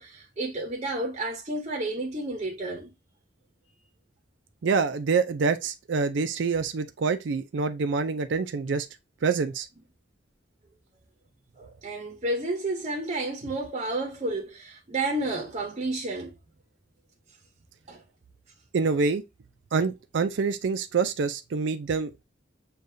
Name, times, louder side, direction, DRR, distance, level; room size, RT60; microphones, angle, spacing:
voice 1, 0.0-2.9 11.6-16.3 17.9-18.0, right 2 dB, 35° right, 0.7 m, -31 dB
voice 2, 4.6-8.9 9.2-9.7 18.7-19.2 19.7-22.2, right 4 dB, 70° right, 0.4 m, -26 dB
6.5 x 2.3 x 2.6 m
head